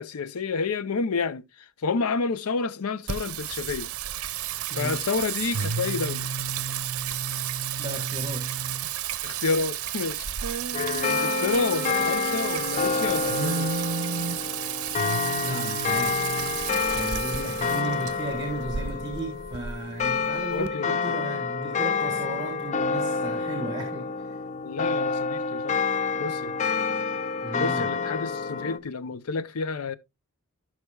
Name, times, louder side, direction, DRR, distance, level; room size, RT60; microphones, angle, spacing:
voice 1, 0.0-1.4 1.8-3.9 4.7-6.3 9.2-13.7 20.5-21.0 24.6-25.8 26.2-26.5 27.6-30.0, left 4 dB, 80° left, 0.6 m, -29 dB
Singing, 3.1-20.7, right 8 dB, 70° right, 0.6 m, -31 dB
voice 2, 7.8-8.5 15.4-16.4 16.7-24.4 27.4-27.9, right 1 dB, 20° right, 1.5 m, -35 dB
sound 1, 10.7-28.8, left 5 dB, 35° left, 0.5 m, -28 dB
15.5 x 5.8 x 2.3 m
head